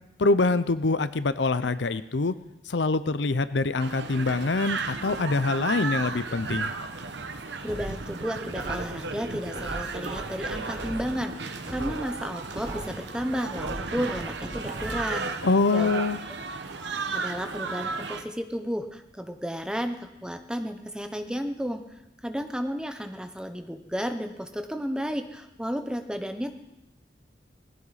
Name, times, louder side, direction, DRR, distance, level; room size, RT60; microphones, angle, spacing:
voice 1, 0.2-2.4 2.7-6.7 15.4-16.2, left 3 dB, 80° left, 14 dB, 0.7 m, -25 dB
sound 1, 3.8-18.2, right 4 dB, 85° right, 1.1 m, -34 dB
voice 2, 7.6-15.3 15.7-15.9 17.1-21.8 22.2-26.5, equal, 5° right, 6 dB, 0.9 m, -33 dB
sound 2, 7.7-9.1 9.6-11.2 11.6-13.1 13.6-15.2 15.6-15.7, right 1 dB, 35° right, 5.6 m, -39 dB
19.0 x 15.5 x 4.1 m, 0.95 s
head